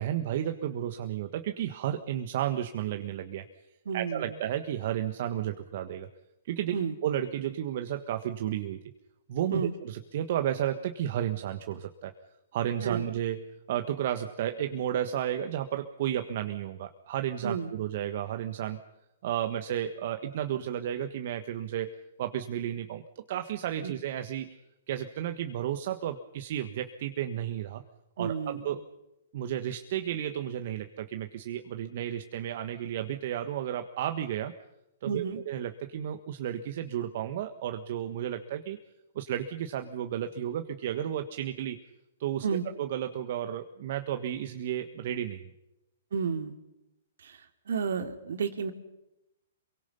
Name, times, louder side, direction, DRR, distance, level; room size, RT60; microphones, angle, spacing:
voice 1, 0.0-3.5 3.9-6.1 6.5-8.8 9.3-12.1 12.5-18.8 19.2-24.6 24.9-27.8 28.2-28.9 29.3-34.5 35.0-38.8 39.2-41.8 42.2-42.5 42.8-45.5, right 11 dB, 55° right, 7 dB, 1.6 m, -32 dB
voice 2, 3.9-4.3 6.7-6.9 9.5-9.7 12.8-13.1 17.4-17.7 23.8-23.9 28.2-28.6 35.0-35.4 42.4-42.6 46.1-46.5 47.2-47.4 47.7-48.7, right 6 dB, 70° right, 8 dB, 2.9 m, -31 dB
28.5 x 23.5 x 5.6 m, 0.92 s
hypercardioid pair, 125°, 0 cm